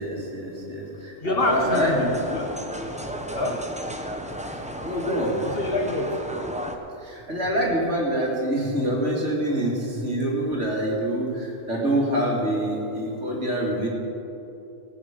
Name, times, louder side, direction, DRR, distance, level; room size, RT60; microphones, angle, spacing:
voice 1, 0.0-2.1 4.8-5.4 7.0-13.9, right 1 dB, 70° right, -3 dB, 2.8 m, -26 dB
voice 2, 1.2-2.5 3.3-3.7 5.4-6.2, left 2 dB, 50° left, 2 dB, 1.4 m, -26 dB
sound 1, 1.4-6.8, right 1 dB, 5° right, 0.6 m, -33 dB
17.5 x 8.6 x 5.2 m, 2.8 s
omnidirectional pair, 1.3 m